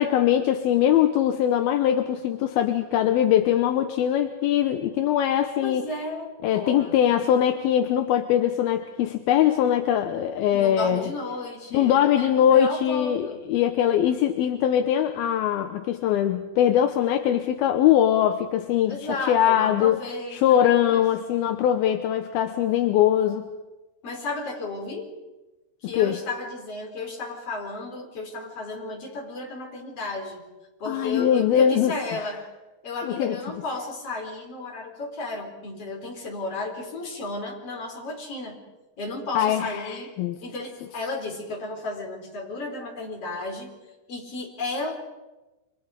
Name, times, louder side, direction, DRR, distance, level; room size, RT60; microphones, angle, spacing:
voice 1, 0.0-5.9 6.4-11.0 11.7-20.0 20.3-23.5 25.8-26.2 30.9-32.3 33.1-33.4 39.4-40.4, left 10 dB, 80° left, 7 dB, 2.8 m, -22 dB
voice 2, 5.6-7.1 10.5-13.4 18.9-21.0 24.0-25.1 25.8-30.4 30.8-32.4 32.8-38.6 39.0-40.1 40.4-43.7 44.1-44.9, left 2 dB, 40° left, 0 dB, 5.4 m, -33 dB
29.5 x 26.0 x 5.2 m, 1.1 s
omnidirectional pair, 4.5 m